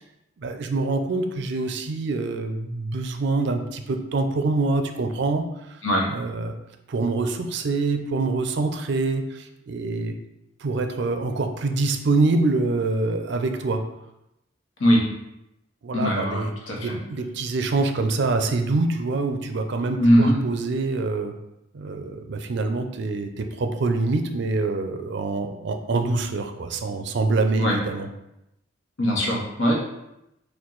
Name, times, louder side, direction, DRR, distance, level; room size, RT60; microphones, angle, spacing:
voice 1, 0.4-5.8 6.1-6.5 6.9-10.1 10.6-13.8 15.8-16.5 16.8-21.3 21.7-28.1, right 3 dB, 60° right, 6 dB, 0.4 m, -25 dB
voice 2, 15.9-17.0 20.0-20.4 27.6-27.8 29.0-29.7, equal, 90° left, -2 dB, 1.1 m, -20 dB
4.5 x 2.3 x 3.8 m, 0.87 s
head